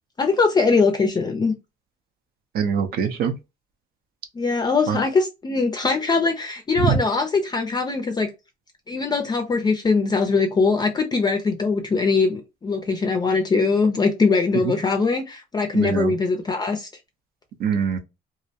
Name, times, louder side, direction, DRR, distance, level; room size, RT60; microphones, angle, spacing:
voice 1, 0.2-1.5 4.3-8.3 8.9-16.9, left 4 dB, 25° left, 0.4 m, -21 dB
voice 2, 2.5-3.3 4.9-5.0 6.8-7.0 14.6-14.8 15.7-16.1 17.6-18.0, right 7 dB, 65° right, 0.6 m, -23 dB
2.4 x 2.1 x 2.7 m
cardioid pair, 110°, 17 cm